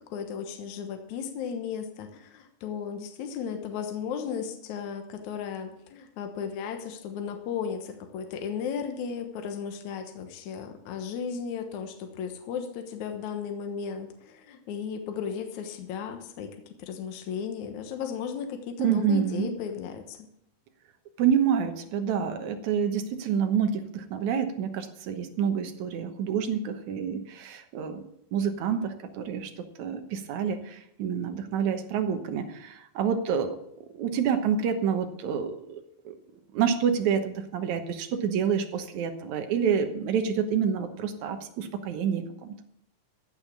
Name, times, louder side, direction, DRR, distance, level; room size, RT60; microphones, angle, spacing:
voice 1, 0.1-16.5 16.8-20.2, left 7 dB, 65° left, 5 dB, 2.5 m, -35 dB
voice 2, 18.8-19.5 21.2-28.0 28.3-29.5 29.8-33.6 34.0-35.8 36.5-42.5, right 7 dB, 65° right, 7 dB, 2.4 m, -28 dB
15.0 x 5.7 x 8.4 m, 0.75 s
omnidirectional pair, 3.8 m